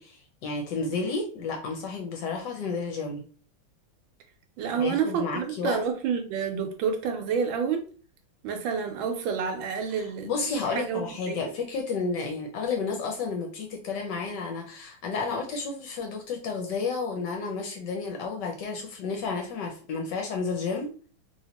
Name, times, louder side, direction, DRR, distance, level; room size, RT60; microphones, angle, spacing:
voice 1, 0.0-3.2 4.8-5.8 10.0-20.9, left 4 dB, 70° left, 1.1 m, -31 dB
voice 2, 4.6-7.9 8.4-10.3 10.7-11.4, right 6 dB, 75° right, 1.2 m, -29 dB
3.0 x 2.8 x 2.8 m
omnidirectional pair, 2.2 m